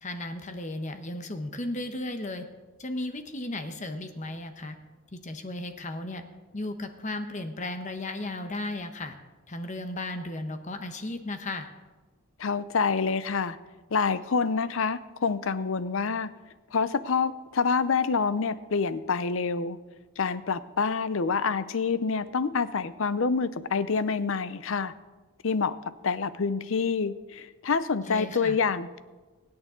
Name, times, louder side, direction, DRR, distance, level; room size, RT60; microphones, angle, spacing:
voice 1, 0.0-2.4 2.8-4.8 5.1-6.2 6.5-9.1 9.5-11.7 28.0-28.6, left 2 dB, 35° left, 7 dB, 0.9 m, -35 dB
voice 2, 12.4-13.6 13.9-16.3 16.7-19.8 20.2-24.9 25.4-25.8 26.0-29.0, left 5 dB, 65° left, 15 dB, 0.6 m, -27 dB
23.5 x 8.8 x 3.8 m, 1.3 s
head